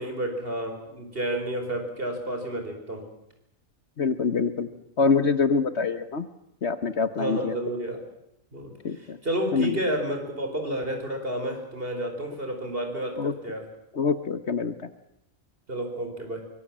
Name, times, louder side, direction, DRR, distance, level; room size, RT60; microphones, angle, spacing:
voice 1, 0.0-3.1 7.2-8.0 8.5-13.6 15.7-16.4, right 1 dB, 45° right, 4 dB, 5.1 m, -31 dB
voice 2, 4.0-4.7 5.0-6.3 6.6-7.5 8.8-9.2 9.5-9.8 13.2-13.3 13.9-14.7, left 5 dB, 55° left, 11 dB, 1.4 m, -25 dB
24.5 x 22.5 x 7.5 m, 0.81 s
omnidirectional pair, 1.4 m